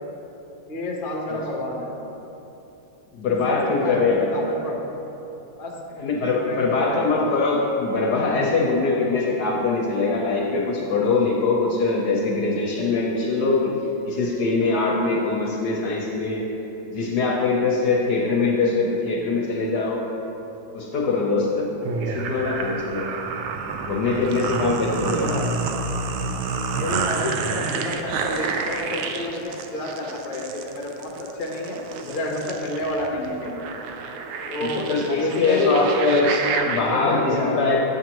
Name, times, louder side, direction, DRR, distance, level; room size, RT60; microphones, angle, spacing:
voice 1, 0.7-1.9 3.2-4.8 5.6-5.7 6.3-7.1 25.0-25.5 26.7-33.6 34.5-34.9 35.2-36.0 36.8-37.7, left 1 dB, 35° left, -2 dB, 0.8 m, -29 dB
voice 2, 3.1-4.3 6.0-13.7 14.1-16.4 16.9-20.0 20.7-21.7 22.0-23.2 23.8-25.4 34.6-36.3 36.6-37.8, left 3 dB, 60° left, -2 dB, 1.2 m, -22 dB
sound 1, 21.9-36.8, right 4 dB, 80° right, 1.3 m, -29 dB
9.1 x 7.6 x 3.0 m, 3.0 s
omnidirectional pair, 2.2 m